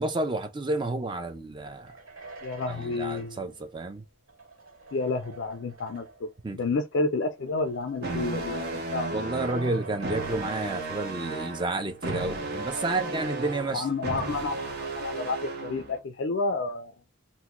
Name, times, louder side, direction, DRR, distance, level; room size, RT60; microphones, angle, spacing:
voice 1, 0.0-1.9 2.7-4.0 6.4-6.6 9.1-13.9, right 2 dB, 20° right, 0.4 m, -30 dB
sound 1, 1.7-6.4 7.3-11.5 11.8-11.9 12.5-14.1, right 3 dB, 75° right, 1.4 m, -46 dB
voice 2, 2.4-3.5 4.9-9.1 13.7-16.9, left 3 dB, 55° left, 0.4 m, -30 dB
sound 2, 8.0-16.0, right 2 dB, 45° right, 0.8 m, -34 dB
3.5 x 2.1 x 2.9 m
head